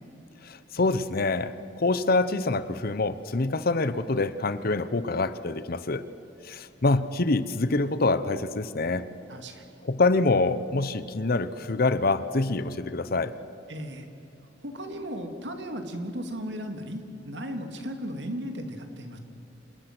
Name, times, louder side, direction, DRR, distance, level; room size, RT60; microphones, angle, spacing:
voice 1, 0.4-6.0 6.4-9.0 9.8-13.3, left 3 dB, 55° left, 14 dB, 0.9 m, -26 dB
voice 2, 9.3-9.8 13.7-14.1 14.6-19.2, equal, 70° right, 6 dB, 2.5 m, -36 dB
27.0 x 20.0 x 6.1 m, 2.8 s
head